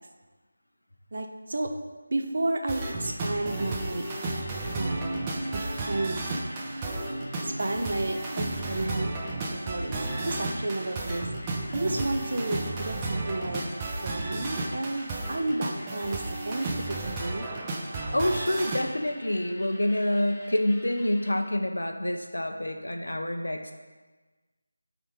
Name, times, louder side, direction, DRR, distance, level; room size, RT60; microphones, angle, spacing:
voice 1, 1.1-1.7 2.1-4.1 4.7-5.2 5.5-6.2 7.4-10.0 10.2-11.3 11.7-13.6 14.0-17.5, right 2 dB, 55° right, 4 dB, 1.0 m, -32 dB
sound 1, 2.7-18.8, right 2 dB, 20° right, 0.8 m, -33 dB
sound 2, 3.0-21.3, left 1 dB, 20° left, 1.2 m, -48 dB
sound 3, 4.8-12.9, right 1 dB, 85° right, 0.3 m, -40 dB
voice 2, 18.1-23.7, left 1 dB, 80° left, 4 dB, 1.1 m, -27 dB
12.0 x 4.1 x 4.6 m, 1.3 s
figure-of-eight pair, 165°, 0 cm